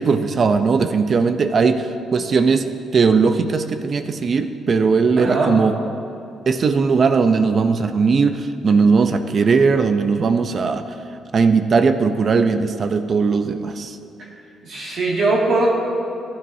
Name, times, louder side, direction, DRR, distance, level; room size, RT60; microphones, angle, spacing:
voice 1, 0.0-2.6 2.9-5.8 6.5-10.8 11.3-14.0, right 5 dB, 45° right, 9 dB, 0.6 m, -18 dB
voice 2, 5.2-5.6 14.6-15.7, right 2 dB, 60° right, -4 dB, 2.1 m, -20 dB
15.0 x 9.7 x 2.7 m, 2.7 s
cardioid pair, 90°, 0 cm